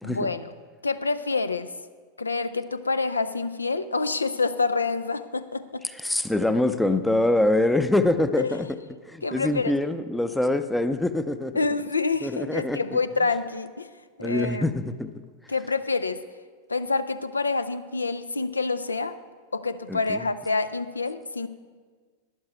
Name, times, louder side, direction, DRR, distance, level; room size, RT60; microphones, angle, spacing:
voice 1, 0.0-0.5 0.8-1.7 2.2-5.8 8.4-8.6 9.2-9.7 11.6-13.9 14.2-14.6 15.5-16.2 16.7-19.2 19.5-21.5, left 4 dB, 80° left, 12 dB, 0.4 m, -27 dB
voice 2, 6.0-8.7 9.1-11.5 12.2-12.8 14.2-15.1 19.9-20.2, left 1 dB, 5° left, 10 dB, 0.5 m, -24 dB
12.0 x 10.5 x 4.4 m, 1.5 s
figure-of-eight pair, 90°, 0 cm